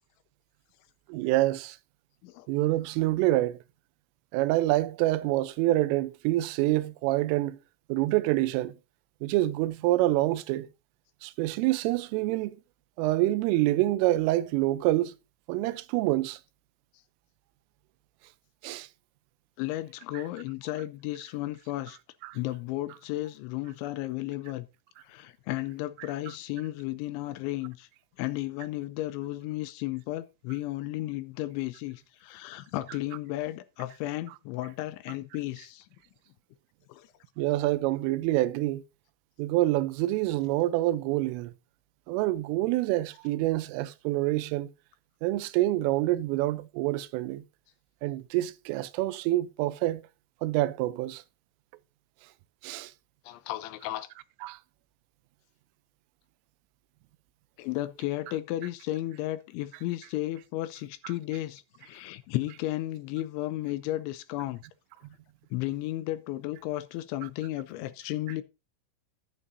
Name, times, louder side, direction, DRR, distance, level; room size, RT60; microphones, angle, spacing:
voice 1, 1.1-1.8 2.5-3.6 4.3-7.6 7.9-8.7 9.2-10.7 11.2-12.6 13.0-15.1 15.5-16.4 18.6-18.9 20.1-20.2 22.2-22.4 37.4-38.8 39.4-41.5 42.1-44.7 45.2-47.4 48.0-50.0 50.4-51.2 52.6-52.9 54.4-54.6, right 16 dB, 90° right, 3.2 m, -26 dB
voice 2, 19.6-22.0 22.3-24.7 25.0-27.9 28.2-35.9 36.9-37.1 37.5-37.6 53.3-54.1 57.6-64.6 65.5-68.4, left 16 dB, 80° left, 2.9 m, -34 dB
11.5 x 11.0 x 2.6 m
omnidirectional pair, 5.7 m